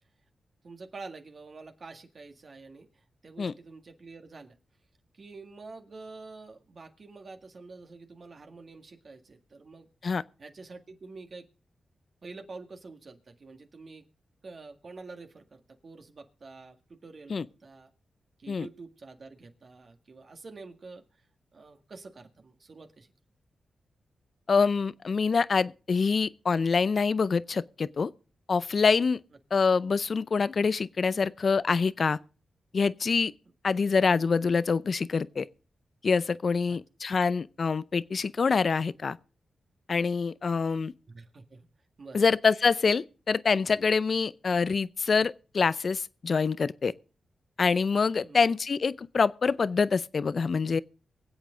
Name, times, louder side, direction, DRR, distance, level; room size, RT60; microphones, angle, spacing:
voice 1, 0.6-4.6 5.1-10.1 10.4-11.5 12.2-14.1 14.4-17.9 18.4-21.2 21.5-23.1 33.7-33.8 36.7-36.8 41.1-41.7 42.0-42.2 48.2-48.5, right 3 dB, 55° right, 1.8 m, -47 dB
voice 2, 24.5-28.1 28.5-29.2 29.5-32.2 32.7-33.3 33.6-35.5 36.0-39.2 39.9-40.9 42.1-46.9 47.6-50.8, left 5 dB, 60° left, 0.5 m, -25 dB
23.5 x 8.1 x 3.7 m
supercardioid pair, 45°, 0 cm